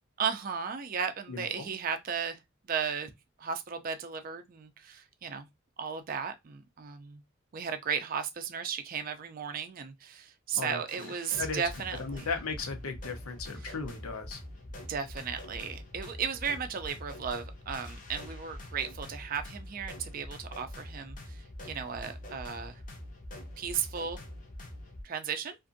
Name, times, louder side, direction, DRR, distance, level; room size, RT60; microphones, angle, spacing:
voice 1, 0.2-2.4 2.7-3.1 3.4-5.5 5.8-7.2 7.5-12.3 13.6-13.7 14.9-22.8 23.6-24.2 25.0-25.6, right 7 dB, 40° right, 0.4 m, -35 dB
voice 2, 1.3-1.7 10.5-11.1 11.4-11.7 12.0-14.4, left 4 dB, 90° left, 0.6 m, -36 dB
sound 1, 10.9-25.0, left 1 dB, 40° left, 0.6 m, -44 dB
2.5 x 2.5 x 2.5 m
head